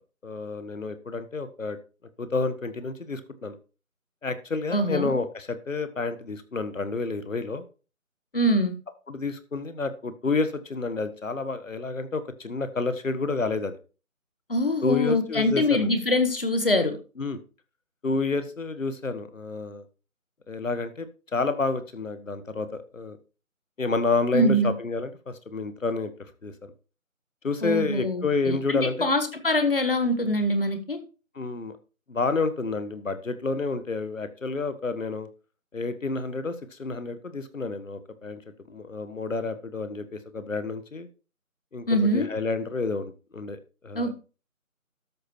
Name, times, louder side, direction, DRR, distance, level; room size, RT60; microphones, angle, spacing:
voice 1, 0.2-1.8 2.2-3.6 4.2-7.6 9.1-13.8 14.8-15.9 17.2-17.4 18.0-19.8 20.5-21.1 21.3-22.7 22.9-23.2 23.8-26.1 26.4-26.5 27.4-29.1 31.3-31.7 32.1-35.3 35.7-38.4 38.7-41.1 41.7-41.8 42.1-43.6 43.8-44.1, left 3 dB, 65° left, 12 dB, 1.5 m, -29 dB
voice 2, 4.7-5.2 8.3-8.7 14.5-17.0 24.3-24.7 27.6-31.0 41.9-42.3 43.9-44.1, left 1 dB, 40° left, 8 dB, 1.5 m, -24 dB
13.0 x 5.5 x 4.4 m, 0.34 s
figure-of-eight pair, 175°, 42 cm